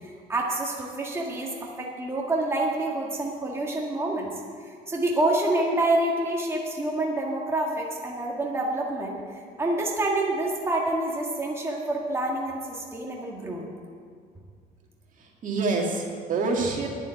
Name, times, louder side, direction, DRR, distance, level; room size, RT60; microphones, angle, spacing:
voice 1, 0.3-4.3 4.6-13.7, right 2 dB, 15° right, -2 dB, 1.7 m, -27 dB
voice 2, 15.1-16.9, right 3 dB, 50° right, 0 dB, 2.0 m, -27 dB
10.0 x 7.5 x 8.6 m, 2.1 s
cardioid pair, 110°, 17 cm